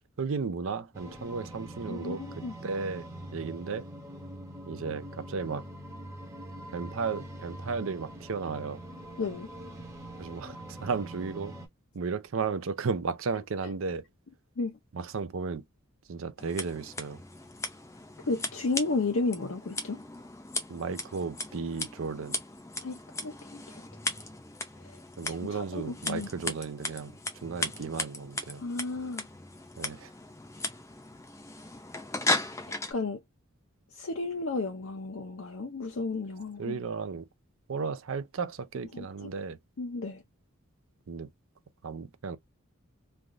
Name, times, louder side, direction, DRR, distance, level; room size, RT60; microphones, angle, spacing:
voice 1, 0.2-3.9 4.7-5.6 6.7-8.8 10.2-11.5 11.9-14.0 14.9-15.6 16.1-17.2 20.7-22.4 25.2-28.6 29.8-30.1 36.6-37.3 37.7-39.6 41.1-41.3 41.8-42.4, right 5 dB, 70° right, 0.5 m, -34 dB
sound 1, 0.9-11.7, right 1 dB, 15° right, 0.8 m, -43 dB
voice 2, 1.9-2.5 9.2-9.5 14.6-14.8 18.3-20.0 22.8-23.8 24.8-26.3 28.6-29.3 32.7-33.2 33.9-36.8 38.9-39.3 39.8-40.2, left 3 dB, 65° left, 0.6 m, -33 dB
Scissors, 16.4-32.9, left 2 dB, 15° left, 0.6 m, -37 dB
3.3 x 2.4 x 2.5 m
head